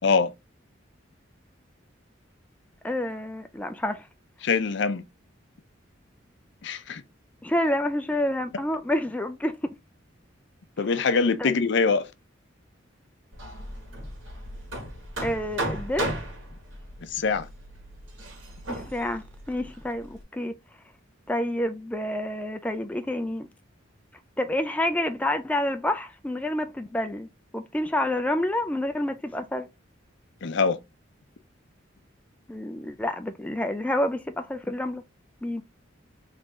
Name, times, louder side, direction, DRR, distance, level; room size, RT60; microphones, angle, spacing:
voice 1, 2.8-4.1 7.4-9.7 11.4-11.5 15.2-16.2 18.7-20.6 21.3-23.5 24.4-27.3 27.5-29.7 32.5-35.0 35.4-35.6, left 1 dB, 5° left, 0.3 m, -28 dB
voice 2, 4.4-5.0 6.6-7.0 10.8-12.1 17.1-17.5 30.4-30.8, left 4 dB, 65° left, 0.6 m, -23 dB
Hammer, 13.3-20.2, right 1 dB, 80° right, 2.1 m, -36 dB
3.8 x 3.2 x 3.5 m
head